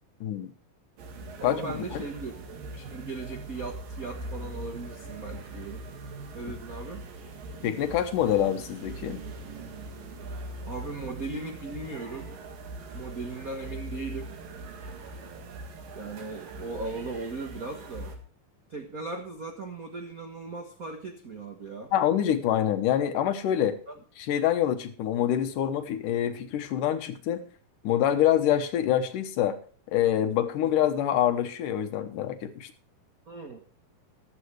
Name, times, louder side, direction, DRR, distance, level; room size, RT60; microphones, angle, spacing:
voice 1, 0.2-0.5 1.4-1.6 1.9-2.0 7.6-9.2 21.9-23.8 24.2-27.4 27.8-29.6 29.9-32.7, left 10 dB, 75° left, 8 dB, 2.6 m, -26 dB
sound 1, 1.0-18.2, right 2 dB, 80° right, 3.7 m, -41 dB
voice 2, 1.4-5.8 6.3-7.1 10.6-12.3 12.9-14.3 15.9-18.1 18.7-21.9 23.9-24.0 30.6-30.7 33.3-33.6, right 3 dB, 60° right, 3 dB, 0.9 m, -38 dB
14.5 x 12.0 x 3.3 m, 0.40 s
omnidirectional pair, 3.9 m